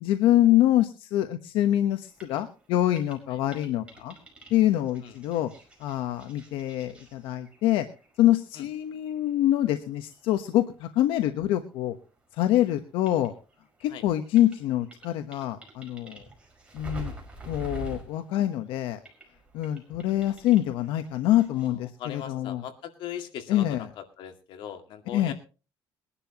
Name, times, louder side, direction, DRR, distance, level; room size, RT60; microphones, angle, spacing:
voice 1, 0.0-4.1 4.5-5.5 5.8-7.9 8.2-12.0 12.4-13.3 13.8-16.2 16.7-17.1 17.5-19.0 19.5-22.6 23.5-23.8 25.1-25.3, left 13 dB, 90° left, 8 dB, 1.1 m, -25 dB
sound 1, 2.1-12.1 12.4-21.7, right 2 dB, 15° right, 5.2 m, -47 dB
voice 2, 21.5-25.3, left 9 dB, 70° left, 7 dB, 2.1 m, -40 dB
22.5 x 11.5 x 2.9 m, 0.33 s
cardioid pair, 135°, 9 cm